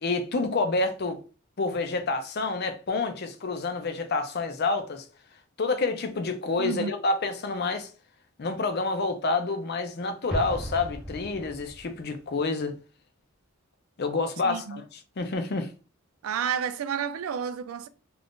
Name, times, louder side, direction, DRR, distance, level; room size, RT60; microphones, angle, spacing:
voice 1, 0.0-1.2 1.6-5.1 5.6-7.9 8.4-12.7 14.0-15.7, left 3 dB, 50° left, 0.5 m, -28 dB
voice 2, 6.6-6.9 14.4-14.8 16.2-17.9, right 7 dB, 85° right, 0.3 m, -30 dB
Explosion, 10.3-12.0, equal, ahead, 0.7 m, -36 dB
2.5 x 2.4 x 3.5 m
head